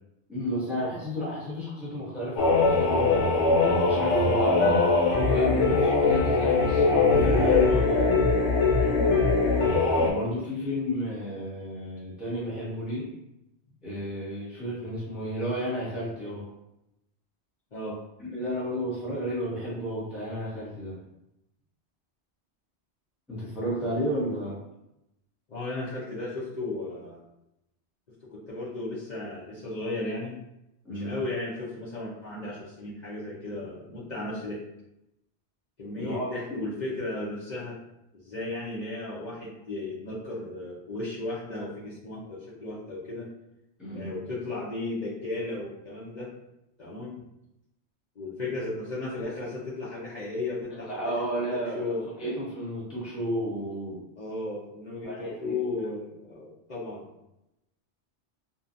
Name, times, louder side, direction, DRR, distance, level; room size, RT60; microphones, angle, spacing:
voice 1, 0.3-3.3 3.8-8.3 10.0-13.1 13.8-16.4 18.2-21.0 23.3-24.6 30.8-31.2 36.0-36.6 43.8-44.2 50.9-54.0 55.0-55.8, equal, ahead, -8 dB, 0.7 m, -32 dB
sound 1, 2.4-10.1, left 3 dB, 80° left, 0.9 m, -22 dB
voice 2, 8.7-9.0 17.7-18.0 25.5-27.2 28.3-30.4 30.9-34.6 35.8-37.7 38.1-43.3 43.9-46.3 46.8-47.2 48.2-51.1 51.5-52.3 54.2-57.0, left 2 dB, 45° left, -8 dB, 0.7 m, -35 dB
2.7 x 2.2 x 2.5 m, 0.86 s
omnidirectional pair, 1.2 m